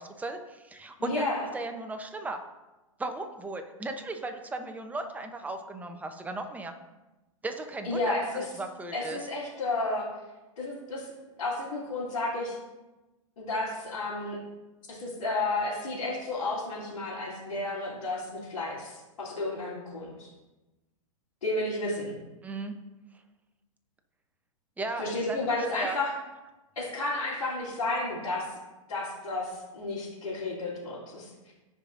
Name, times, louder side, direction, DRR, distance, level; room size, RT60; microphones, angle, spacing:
voice 1, 0.0-1.2 1.5-2.4 3.0-6.7 7.4-9.2 22.4-22.7 24.8-25.4 25.7-26.0, right 2 dB, 10° right, 6 dB, 0.8 m, -36 dB
voice 2, 1.0-1.4 7.8-8.4 8.9-10.1 10.6-11.1 11.4-12.6 13.4-14.4 14.9-20.3 21.4-22.2 25.0-26.1 26.7-28.4 28.9-31.5, left 2 dB, 85° left, -9 dB, 3.0 m, -32 dB
15.0 x 5.1 x 2.6 m, 1.1 s
hypercardioid pair, 120°, 17 cm